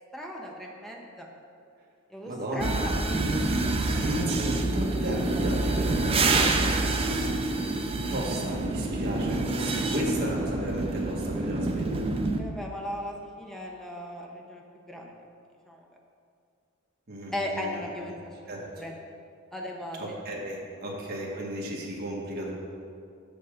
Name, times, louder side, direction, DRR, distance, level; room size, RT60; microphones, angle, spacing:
voice 1, 0.1-1.3 2.1-2.9 3.6-3.7 12.4-15.2 15.6-15.9 17.3-18.2 18.7-18.9 19.5-20.2, left 1 dB, ahead, -1 dB, 0.9 m, -37 dB
voice 2, 2.3-3.0 3.9-6.6 8.1-12.1 17.1-17.8 18.5-18.6 20.0-22.5, right 1 dB, 50° right, -3 dB, 1.5 m, -34 dB
sound 1, 2.6-12.4, right 2 dB, 25° right, 0.5 m, -27 dB
6.9 x 6.2 x 5.0 m, 2.4 s
head